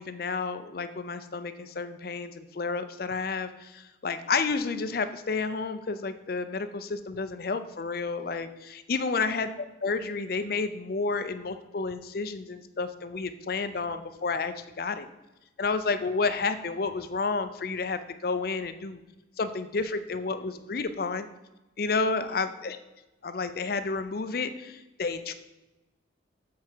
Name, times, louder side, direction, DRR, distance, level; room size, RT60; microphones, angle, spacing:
voice 1, 0.0-15.1 15.6-19.0 19.4-21.3 21.8-22.8 23.2-25.3, left 4 dB, 50° left, 10 dB, 0.5 m, -31 dB
7.7 x 4.7 x 4.5 m, 1.0 s
head